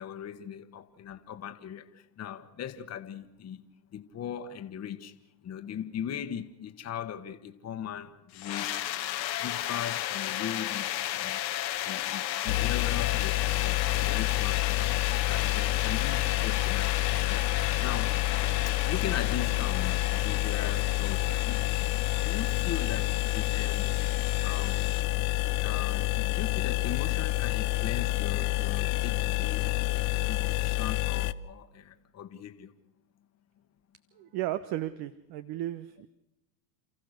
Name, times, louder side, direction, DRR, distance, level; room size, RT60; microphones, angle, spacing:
voice 1, 0.0-3.6 3.9-5.2 5.4-8.8 9.4-11.4 11.8-17.0 17.2-18.2 18.7-21.7 22.1-25.0 25.3-32.7, left 9 dB, 30° left, 1.4 m, -39 dB
sound 1, 8.3-25.0, left 13 dB, 90° left, 1.6 m, -34 dB
sound 2, 12.5-31.3, left 20 dB, 60° left, 0.8 m, -28 dB
voice 2, 34.2-36.1, right 14 dB, 50° right, 1.0 m, -34 dB
29.0 x 14.5 x 6.6 m
hypercardioid pair, 100°, 50 cm